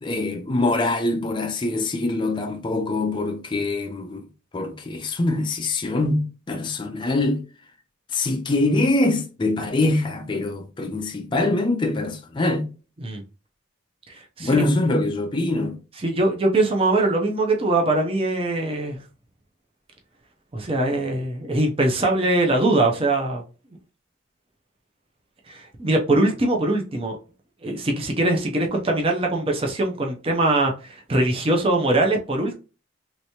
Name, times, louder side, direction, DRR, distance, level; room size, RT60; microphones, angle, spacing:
voice 1, 0.0-4.3 4.5-7.5 8.1-12.7 14.4-15.8, left 2 dB, 25° left, 0.4 m, -24 dB
voice 2, 14.1-14.7 16.0-19.0 20.5-23.4 25.5-27.2 27.6-32.5, right 2 dB, 30° right, 0.6 m, -22 dB
3.3 x 3.0 x 2.8 m
head